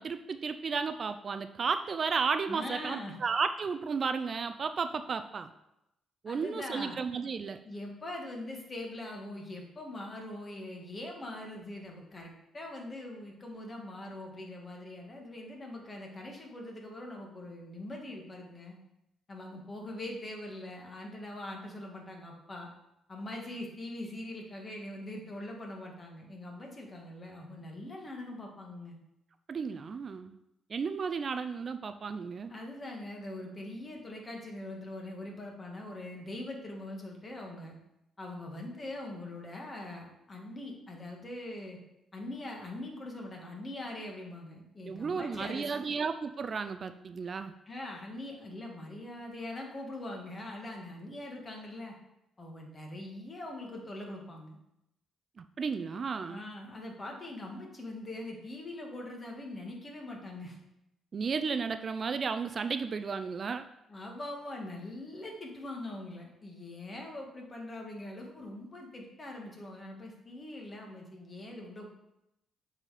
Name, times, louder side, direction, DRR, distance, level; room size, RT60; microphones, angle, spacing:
voice 1, 0.0-5.5 6.2-7.6 29.5-30.4 30.7-32.5 44.8-47.5 55.4-56.4 61.1-63.6, right 5 dB, 45° right, 10 dB, 0.4 m, -33 dB
voice 2, 2.5-3.2 6.3-7.0 7.6-18.7 19.3-22.7 23.1-29.0 32.5-37.7 38.2-41.8 42.1-45.9 47.7-52.0 52.4-54.6 56.3-60.6 63.9-71.9, left 1 dB, 30° left, 1 dB, 1.7 m, -42 dB
7.4 x 4.1 x 4.9 m, 0.85 s
cardioid pair, 105°, 0 cm